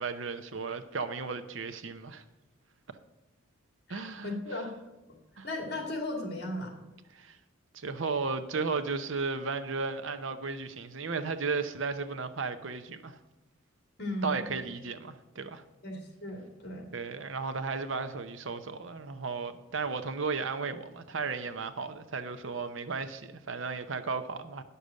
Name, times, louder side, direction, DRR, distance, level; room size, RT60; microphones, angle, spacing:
voice 1, 0.0-2.2 3.9-4.6 5.4-5.5 7.1-7.4 7.7-13.2 14.2-15.6 16.9-24.6, right 4 dB, 70° right, 10 dB, 0.8 m, -34 dB
voice 2, 3.9-4.7 5.4-6.7 14.0-14.4 15.8-16.9, left 1 dB, 50° left, 2 dB, 2.4 m, -36 dB
10.0 x 6.8 x 6.3 m, 1.0 s
head